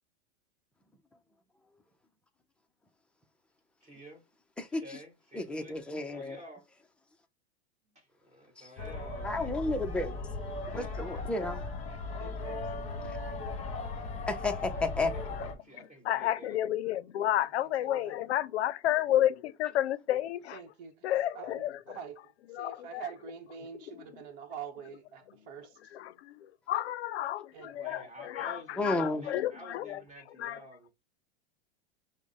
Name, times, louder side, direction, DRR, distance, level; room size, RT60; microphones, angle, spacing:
voice 1, 3.8-4.2 4.7-5.8 6.1-6.7 8.0-9.5 10.7-11.0 14.7-16.6 27.8-30.9, equal, 20° right, 2.0 m, -50 dB
voice 2, 4.6-5.0 5.3-6.4 8.6-8.7 9.2-10.2 10.7-11.6 13.0-13.2 14.3-15.1 28.8-29.2, left 2 dB, 5° left, 0.5 m, -32 dB
sound 1, 8.8-15.5, left 3 dB, 20° left, 1.2 m, -37 dB
voice 3, 12.2-13.0 17.4-17.5 17.8-18.1 20.5-26.0 27.5-28.1 28.9-29.3, right 7 dB, 50° right, 1.0 m, -46 dB
voice 4, 15.7-20.6 21.0-22.0 22.5-23.1 23.7-24.2 25.9-30.6, left 13 dB, 80° left, 0.5 m, -32 dB
6.1 x 2.1 x 3.5 m
hypercardioid pair, 120°, 32 cm